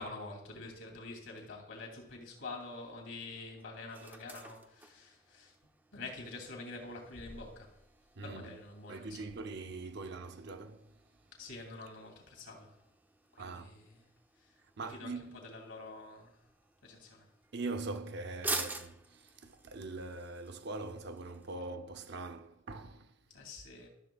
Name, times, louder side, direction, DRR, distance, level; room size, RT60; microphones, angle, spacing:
voice 1, 0.0-5.5 5.9-7.7 8.2-9.1 11.4-12.7 13.3-13.7 14.9-15.1 15.4-16.3 16.8-17.3 23.3-23.9, left 3 dB, 75° left, 2.7 m, -46 dB
sound 1, 2.0-21.6, right 2 dB, 10° right, 0.5 m, -48 dB
voice 2, 8.1-8.6 8.9-11.0 13.4-13.8 14.6-15.5 17.5-23.4, right 3 dB, 55° right, 0.6 m, -42 dB
13.5 x 6.9 x 2.3 m
head